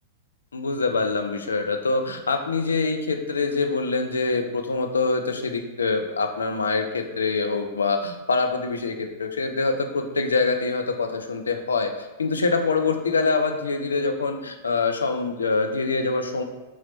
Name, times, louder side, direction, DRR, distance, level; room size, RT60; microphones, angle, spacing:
voice 1, 0.5-16.4, left 4 dB, 75° left, 5 dB, 0.4 m, -25 dB
2.9 x 2.8 x 4.1 m, 1.1 s
figure-of-eight pair, 95°, 0 cm